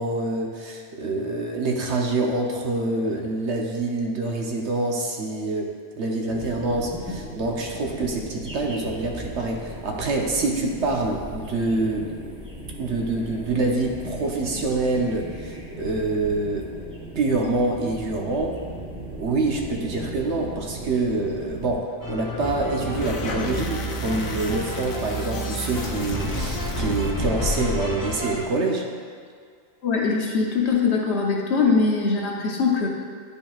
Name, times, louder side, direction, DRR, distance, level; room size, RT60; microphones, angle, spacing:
voice 1, 0.0-12.1 12.8-16.7 17.1-18.6 19.2-28.9, right 2 dB, 60° right, 0 dB, 1.0 m, -26 dB
sound 1, 6.3-21.8, right 1 dB, 5° right, 0.7 m, -37 dB
sound 2, 22.0-28.4, equal, 30° left, 0.3 m, -29 dB
sound 3, 22.8-27.2, left 4 dB, 85° left, 1.1 m, -37 dB
voice 2, 29.8-32.9, left 4 dB, 60° left, -1 dB, 1.1 m, -22 dB
10.0 x 5.4 x 2.4 m, 2.1 s
omnidirectional pair, 1.4 m